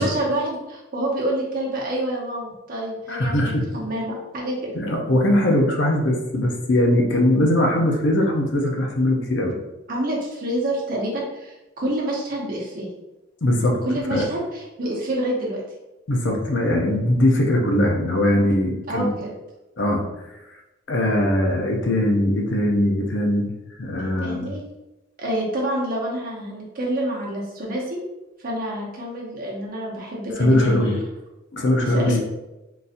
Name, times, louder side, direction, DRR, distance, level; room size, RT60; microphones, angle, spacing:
voice 1, 0.0-4.7 9.9-12.9 13.8-15.6 18.9-19.3 24.0-24.6 25.2-28.0 28.4-30.8 31.8-32.1, right 1 dB, 45° right, -3 dB, 0.9 m, -27 dB
voice 2, 3.1-3.7 4.7-9.5 13.4-13.8 14.1-14.2 16.1-19.1 19.8-20.0 20.9-23.5 23.8-24.5 30.4-31.0 31.5-32.2, left 1 dB, 60° left, 1 dB, 0.6 m, -20 dB
3.9 x 2.7 x 2.5 m, 0.99 s
head